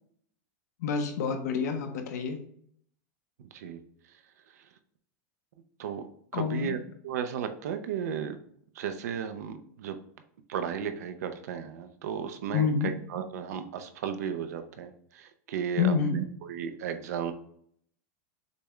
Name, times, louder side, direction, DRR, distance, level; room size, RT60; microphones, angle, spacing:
voice 1, 0.8-2.4 6.3-6.7 12.5-12.9 15.8-16.2, left 6 dB, 90° left, 5 dB, 1.0 m, -28 dB
voice 2, 3.4-3.8 4.1-4.7 5.8-8.4 8.7-10.0 10.5-17.3, right 8 dB, 80° right, 8 dB, 0.7 m, -35 dB
6.7 x 2.4 x 3.2 m, 0.64 s
supercardioid pair, 175°, 9 cm